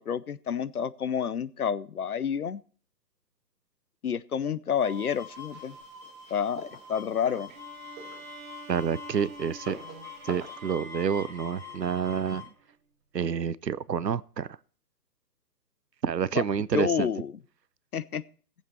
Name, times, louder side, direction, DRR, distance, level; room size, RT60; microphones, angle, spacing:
voice 1, 0.0-2.6 4.0-5.8 6.3-7.5 16.4-16.5 16.7-17.3 17.9-18.2, left 7 dB, 65° left, 0.7 m, -29 dB
sound 1, 4.8-12.5, left 6 dB, 5° left, 1.4 m, -46 dB
sound 2, 4.9-10.6, right 2 dB, 20° right, 3.3 m, -47 dB
sound 3, 7.5-12.8, right 4 dB, 55° right, 1.4 m, -47 dB
voice 2, 8.7-9.8 10.2-12.5 13.1-14.5 16.0-17.1, right 7 dB, 80° right, 0.7 m, -28 dB
19.5 x 7.4 x 4.2 m
figure-of-eight pair, 135°, 48 cm